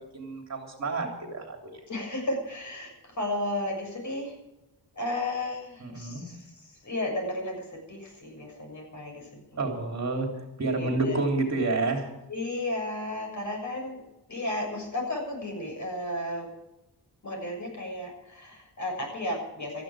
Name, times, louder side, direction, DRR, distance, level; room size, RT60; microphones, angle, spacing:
voice 1, 0.0-1.8 5.8-6.2 9.6-12.1, right 3 dB, 40° right, 2 dB, 3.4 m, -29 dB
voice 2, 1.9-4.4 4.9-9.6 10.8-11.2 12.3-14.0 14.3-16.5 17.2-19.8, left 1 dB, 45° left, 1 dB, 6.8 m, -33 dB
18.5 x 14.0 x 5.0 m, 0.94 s
wide cardioid pair, 180°, 40 cm